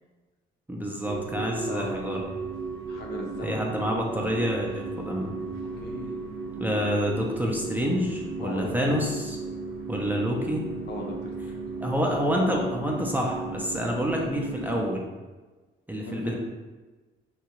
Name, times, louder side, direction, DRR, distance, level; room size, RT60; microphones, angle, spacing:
voice 1, 0.7-2.2 3.4-5.3 6.6-9.4 9.9-10.7 11.8-15.1 15.9-16.4, equal, 10° right, -2 dB, 0.4 m, -28 dB
sound 1, 1.0-14.9, right 4 dB, 90° right, 0.6 m, -35 dB
voice 2, 2.9-3.6 5.8-6.2 8.4-8.9 10.9-11.5 16.0-16.4, left 2 dB, 60° left, 0 dB, 0.6 m, -37 dB
2.7 x 2.3 x 2.9 m, 1.3 s
cardioid pair, 90°, 20 cm